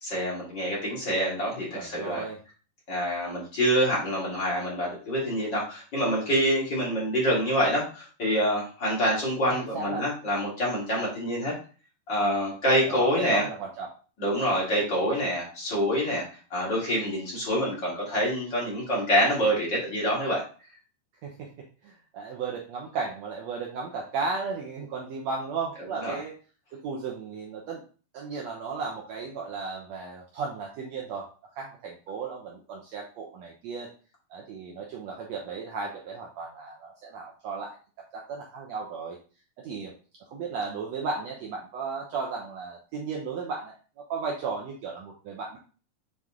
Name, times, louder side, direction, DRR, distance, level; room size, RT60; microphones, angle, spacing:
voice 1, 0.0-2.2 2.9-11.5 12.1-13.4 14.2-16.2 16.5-20.4 26.0-26.2, equal, 35° left, -5 dB, 2.7 m, -26 dB
voice 2, 1.7-2.4 9.5-10.1 12.9-14.0 21.2-21.3 21.8-26.3 26.7-27.8 28.1-31.3 31.6-33.9 34.3-37.8 38.1-39.2 39.6-39.9 40.3-45.6, right 4 dB, 70° right, -1 dB, 1.8 m, -35 dB
7.7 x 4.0 x 3.7 m, 0.38 s
omnidirectional pair, 3.9 m